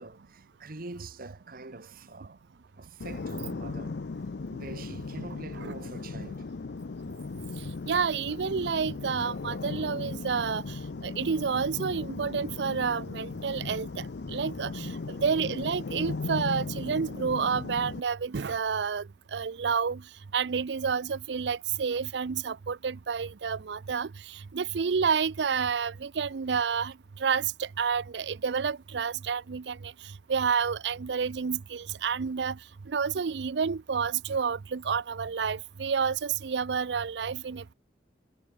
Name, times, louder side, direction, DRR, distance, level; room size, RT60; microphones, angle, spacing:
voice 1, 0.0-2.4 2.8-4.0 4.5-6.5 14.8-15.0, right 2 dB, 55° right, 1.6 m, -44 dB
sound 1, 3.0-18.0, left 3 dB, 70° left, 0.6 m, -37 dB
voice 2, 7.9-10.6 11.0-13.9 14.3-19.0 19.3-20.0 20.3-24.1 24.5-26.9 27.2-29.9 30.3-32.6 32.9-37.7, right 6 dB, 70° right, 0.5 m, -29 dB
head